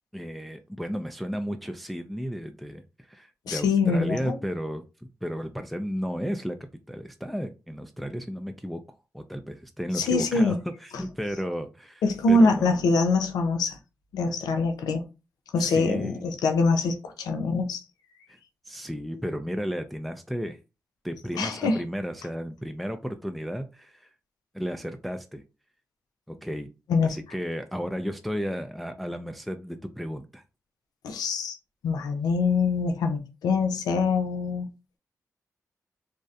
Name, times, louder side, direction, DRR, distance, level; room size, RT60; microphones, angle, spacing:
voice 1, 0.1-4.8 5.2-6.6 6.9-8.8 9.1-12.0 12.3-12.9 15.6-16.2 18.3-18.4 18.7-20.6 21.0-24.1 24.5-25.4 26.3-26.7 27.0-30.4, equal, ahead, 0.3 m, -33 dB
voice 2, 3.5-4.4 9.9-10.6 10.9-11.0 12.0-13.8 14.1-15.0 15.5-17.8 21.3-21.8 26.9-27.2 31.0-31.6 31.8-34.7, left 3 dB, 85° left, 0.4 m, -24 dB
2.6 x 2.0 x 2.3 m
supercardioid pair, 45°, 7 cm